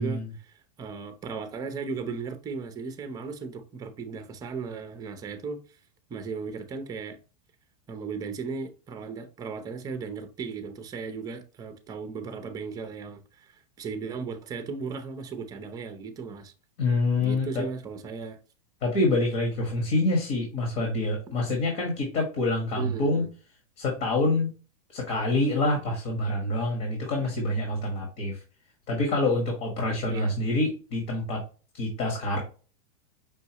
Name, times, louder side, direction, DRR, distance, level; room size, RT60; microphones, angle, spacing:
voice 1, 0.0-5.6 6.1-7.2 7.9-13.5 13.8-16.5 17.2-18.4 22.8-23.3 30.1-30.4, right 5 dB, 20° right, 0.7 m, -36 dB
voice 2, 16.8-17.6 18.8-23.3 23.8-24.5 24.9-28.4 28.9-31.4 31.7-32.4, left 2 dB, 45° left, 1.7 m, -26 dB
5.5 x 2.7 x 2.9 m
supercardioid pair, 145°, 20 cm